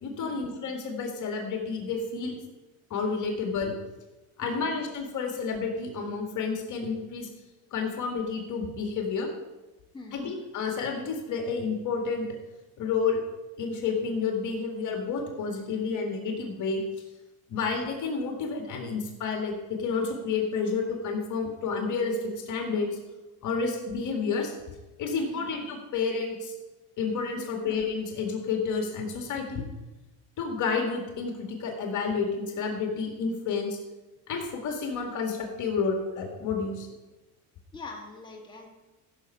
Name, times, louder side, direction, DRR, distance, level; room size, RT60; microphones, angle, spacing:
voice 1, 0.0-2.4 2.9-3.7 4.4-7.3 7.7-9.3 10.1-12.3 12.8-13.2 13.6-16.8 17.5-19.5 19.8-22.9 23.4-24.5 25.0-26.5 27.0-29.6 30.4-33.8 34.3-36.9, left 5 dB, 50° left, 3 dB, 2.0 m, -30 dB
voice 2, 37.7-38.7, left 3 dB, 10° left, -1 dB, 2.0 m, -43 dB
15.0 x 6.4 x 5.5 m, 1.1 s
supercardioid pair, 115°, 39 cm